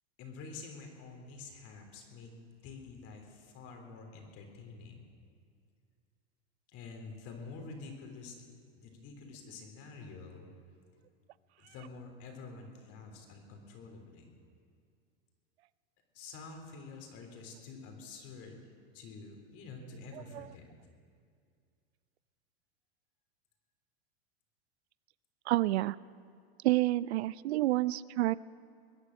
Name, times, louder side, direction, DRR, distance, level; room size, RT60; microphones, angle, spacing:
voice 1, 0.2-2.3 2.6-5.1 6.7-10.5 11.6-14.3 16.1-18.6 18.9-20.7, left 4 dB, 50° left, 3 dB, 3.5 m, -48 dB
voice 2, 25.5-26.0 26.6-28.3, right 17 dB, 80° right, 19 dB, 0.5 m, -28 dB
22.5 x 9.9 x 6.5 m, 2.3 s
supercardioid pair, 120°, 32 cm